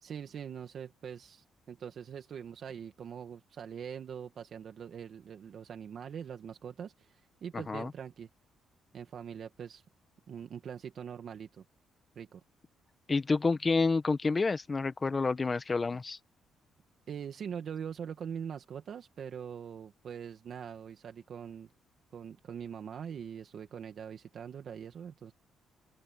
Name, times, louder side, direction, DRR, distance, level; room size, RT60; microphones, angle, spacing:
voice 1, 0.0-8.3 8.9-9.8 10.3-11.6 12.2-12.4 17.1-21.7 22.1-25.3, right 8 dB, 60° right, 1.8 m, -43 dB
voice 2, 7.5-7.9 13.1-16.2, left 4 dB, 30° left, 1.5 m, -29 dB
open air
cardioid pair, 90°, 0 cm